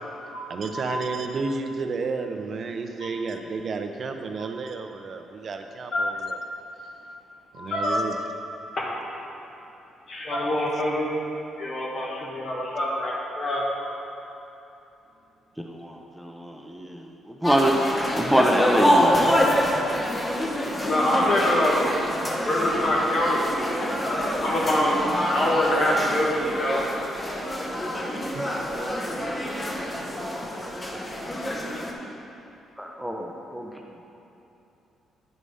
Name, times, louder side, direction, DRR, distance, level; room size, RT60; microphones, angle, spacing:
voice 1, 0.5-6.4 7.5-8.1 10.7-10.8 28.3-28.6 29.9-30.1, right 4 dB, 50° right, 5 dB, 0.6 m, -32 dB
voice 2, 7.5-8.0 8.8-9.1 10.1-11.1 11.6-14.0 20.9-22.0 22.5-23.4 24.0-26.9, left 1 dB, 55° left, -4 dB, 2.0 m, -25 dB
voice 3, 15.6-17.7 18.1-19.5 31.9-32.2 32.8-33.8, right 1 dB, ahead, 0 dB, 0.7 m, -25 dB
crowd int high school hallway lockers medium busy, 17.4-31.9, equal, 20° left, 1.1 m, -27 dB
10.0 x 4.9 x 5.5 m, 2.9 s
cardioid pair, 90°, 0 cm